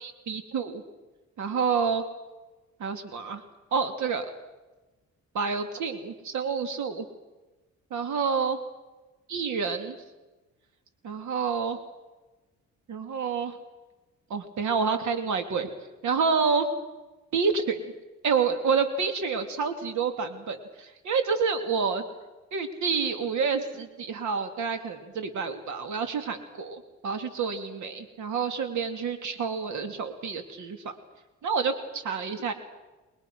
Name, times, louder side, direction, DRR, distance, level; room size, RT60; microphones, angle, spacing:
voice 1, 0.0-0.8 1.4-2.0 2.8-3.4 3.7-4.3 5.3-7.1 7.9-8.6 9.3-10.0 11.0-11.8 12.9-13.5 14.3-15.7 16.0-16.7 17.3-17.8 18.2-22.0 22.5-30.8 31.4-32.5, right 5 dB, 75° right, 8 dB, 2.8 m, -28 dB
29.5 x 22.0 x 6.2 m, 1.1 s
cardioid pair, 90°, 30 cm